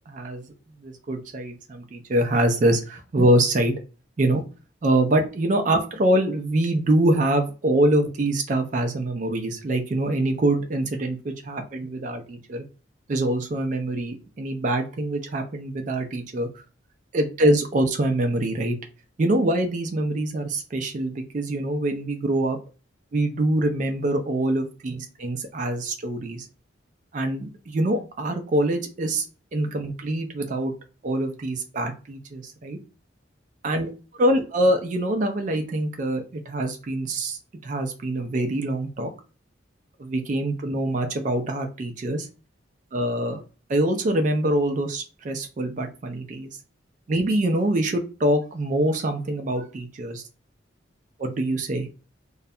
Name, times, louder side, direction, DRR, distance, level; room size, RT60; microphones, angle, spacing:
voice 1, 0.1-0.5 0.8-3.8 4.2-4.4 4.8-12.6 13.1-16.6 17.1-18.8 19.2-22.6 23.1-26.5 27.1-29.2 29.5-30.7 31.0-32.8 33.6-33.9 34.2-39.1 40.0-42.3 42.9-43.4 43.7-46.5 47.1-50.2 51.2-51.9, right 1 dB, 40° right, 4 dB, 0.3 m, -24 dB
2.3 x 2.1 x 2.6 m, 0.34 s
head